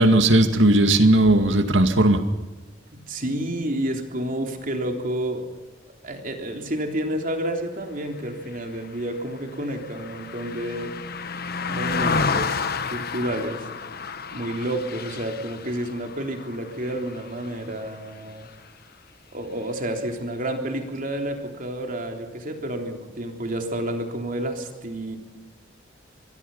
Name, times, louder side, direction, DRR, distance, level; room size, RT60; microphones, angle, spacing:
voice 1, 0.0-2.2, right 1 dB, 75° right, 8 dB, 2.2 m, -17 dB
voice 2, 2.9-5.5 6.0-10.9 11.7-12.6 12.9-13.7 14.3-18.5 19.3-25.2, right 1 dB, 45° right, 3 dB, 3.4 m, -30 dB
Car passing by, 8.5-18.1 18.5-18.7, left 4 dB, 55° left, 1.2 m, -31 dB
25.5 x 22.0 x 5.6 m, 1.2 s
head